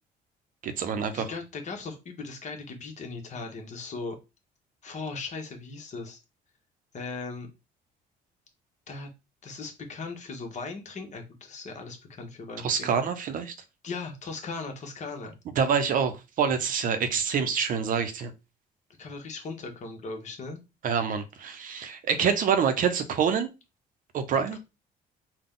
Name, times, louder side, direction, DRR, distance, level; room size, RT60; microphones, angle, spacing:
voice 1, 0.6-1.3 12.6-13.5 15.6-18.3 20.8-23.5 24.1-24.6, right 6 dB, 55° right, 0.6 m, -26 dB
voice 2, 1.1-4.2 4.8-6.2 6.9-7.5 8.9-9.1 9.4-13.1 13.8-15.3 19.0-20.6, left 4 dB, 45° left, 1.1 m, -38 dB
3.9 x 2.3 x 3.7 m
cardioid pair, 110°, 17 cm